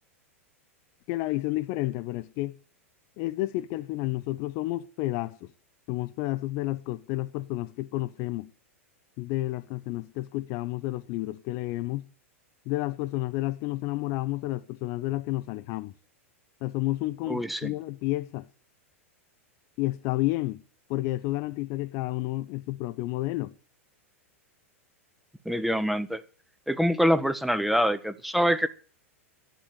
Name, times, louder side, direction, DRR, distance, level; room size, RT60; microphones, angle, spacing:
voice 1, 1.1-2.6 3.2-5.5 5.9-8.5 9.2-12.1 12.7-15.9 16.6-18.5 19.8-20.6 20.9-23.5, left 18 dB, 45° left, 0.7 m, -30 dB
voice 2, 17.3-17.7 25.4-26.2 26.7-28.7, equal, ahead, 1.0 m, -25 dB
12.0 x 8.9 x 8.4 m
figure-of-eight pair, 95°, 8 cm